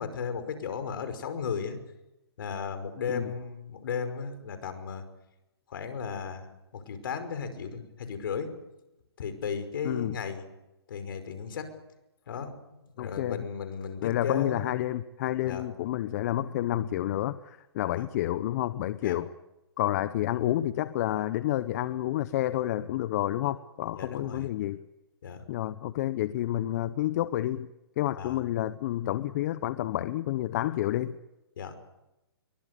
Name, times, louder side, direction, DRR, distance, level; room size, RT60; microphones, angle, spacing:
voice 1, 0.0-1.8 2.4-5.0 5.7-6.5 6.7-8.6 9.2-10.4 10.9-11.7 12.3-14.7 15.4-15.7 17.9-18.1 19.0-19.2 24.0-24.5 25.2-25.4 28.2-28.4 31.6-31.7, left 6 dB, 60° left, 10 dB, 5.3 m, -35 dB
voice 2, 9.8-10.2 13.0-13.4 14.0-19.3 19.8-24.8 25.5-27.7 28.0-31.2, left 13 dB, 40° left, 14 dB, 0.9 m, -29 dB
24.5 x 23.5 x 8.4 m, 0.95 s
hypercardioid pair, 140°, 13 cm